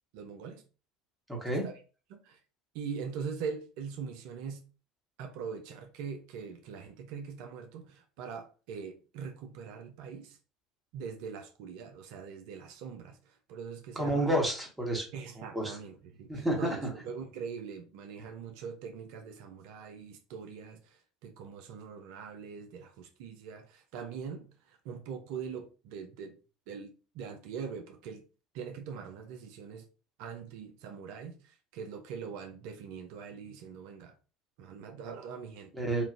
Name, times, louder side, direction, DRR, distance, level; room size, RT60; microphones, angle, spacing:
voice 1, 0.1-0.6 1.5-1.7 2.1-2.4 2.7-4.7 5.2-10.4 10.9-13.2 13.5-14.3 15.1-26.4 26.7-28.2 28.5-29.8 30.2-31.4 31.7-34.1 34.6-35.9, right 6 dB, 65° right, 0.5 m, -42 dB
voice 2, 1.3-1.7 13.9-15.0 15.5-15.8 16.3-16.9 35.7-36.0, right 1 dB, 10° right, 1.3 m, -30 dB
3.0 x 2.4 x 2.5 m
hypercardioid pair, 70°, 0 cm